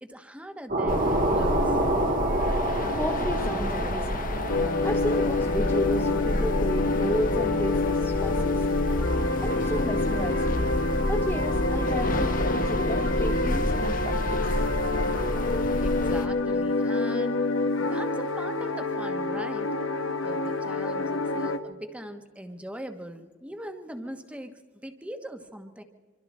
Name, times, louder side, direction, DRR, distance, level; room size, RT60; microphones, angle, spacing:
voice 1, 0.0-1.8 15.8-17.5 17.8-19.8 20.2-24.5 24.8-25.8, equal, 5° right, 7 dB, 1.3 m, -41 dB
sound 1, 0.7-8.7, right 1 dB, 50° right, 2.9 m, -29 dB
sound 2, 0.9-16.3, left 1 dB, 45° left, 1.0 m, -29 dB
voice 2, 3.0-4.3 4.8-8.7 9.4-10.6 11.1-14.6, left 1 dB, 10° left, 3 dB, 0.8 m, -33 dB
sound 3, 4.5-21.6, left 2 dB, 80° left, 1.2 m, -27 dB
25.5 x 24.5 x 4.3 m, 1.4 s
head